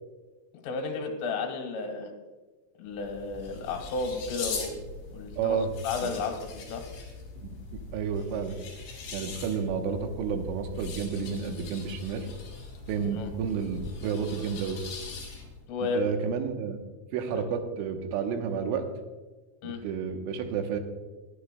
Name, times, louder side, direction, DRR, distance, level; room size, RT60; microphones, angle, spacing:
voice 1, 0.6-2.1 2.8-4.8 5.1-5.6 5.8-6.9 13.0-13.3 15.7-16.0 17.3-17.4 19.6-19.8, left 4 dB, 80° left, 3 dB, 4.0 m, -33 dB
sound 1, 2.9-15.7, left 4 dB, 65° left, 4.9 m, -41 dB
voice 2, 5.4-5.7 6.0-6.1 7.4-8.6 9.1-12.3 12.9-14.8 15.9-16.8 17.1-18.9 19.6-20.8, right 6 dB, 80° right, 5 dB, 3.4 m, -31 dB
21.0 x 10.0 x 2.2 m, 1.3 s
omnidirectional pair, 5.6 m